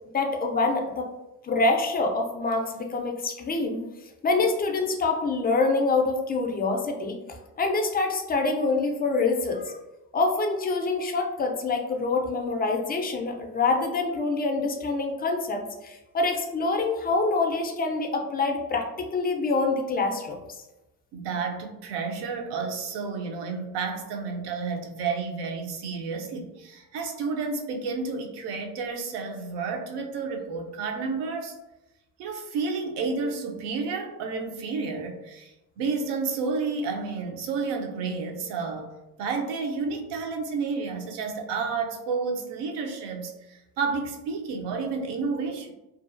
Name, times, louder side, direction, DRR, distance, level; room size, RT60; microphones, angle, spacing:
voice 1, 0.1-1.1 1.4-3.8 4.2-7.2 7.6-9.8 10.1-20.6, left 3 dB, 25° left, 3 dB, 0.3 m, -26 dB
voice 2, 21.1-31.5 32.2-35.5 35.8-45.7, right 4 dB, 75° right, 4 dB, 0.6 m, -31 dB
2.5 x 2.3 x 2.5 m, 0.97 s
supercardioid pair, 95°, 41 cm